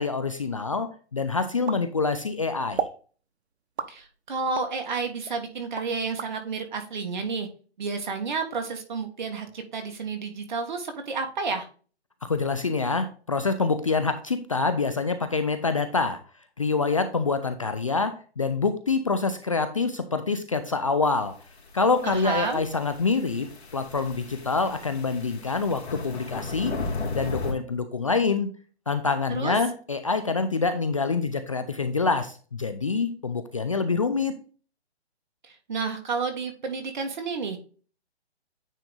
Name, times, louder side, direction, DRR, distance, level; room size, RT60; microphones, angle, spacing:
voice 1, 0.0-2.8 12.2-16.2 16.6-21.3 21.7-26.7 27.1-28.5 28.9-34.3, left 4 dB, 30° left, 9 dB, 0.5 m, -26 dB
sound 1, 1.7-2.4 2.8-3.0 3.8-4.8 5.3-6.3, right 6 dB, 75° right, 1.0 m, -33 dB
voice 2, 3.9-7.5 7.8-11.7 22.0-22.6 29.3-29.6 35.4-37.6, right 4 dB, 45° right, 5 dB, 1.7 m, -31 dB
sound 2, 21.4-27.5, left 3 dB, 70° left, 2.5 m, -36 dB
9.2 x 3.8 x 3.7 m, 0.39 s
hypercardioid pair, 165°, 33 cm